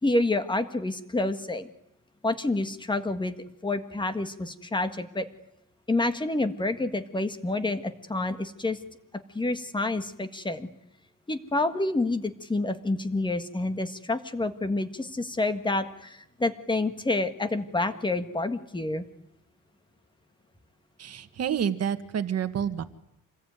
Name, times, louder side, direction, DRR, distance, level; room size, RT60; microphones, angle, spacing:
voice 1, 0.0-1.7 2.2-3.3 3.6-5.2 5.9-8.8 9.3-10.7 11.3-19.0, left 2 dB, 15° left, 9 dB, 1.6 m, -28 dB
voice 2, 21.0-22.8, right 8 dB, 50° right, 9 dB, 1.7 m, -29 dB
27.5 x 20.5 x 9.4 m, 0.83 s
wide cardioid pair, 175°, 33 cm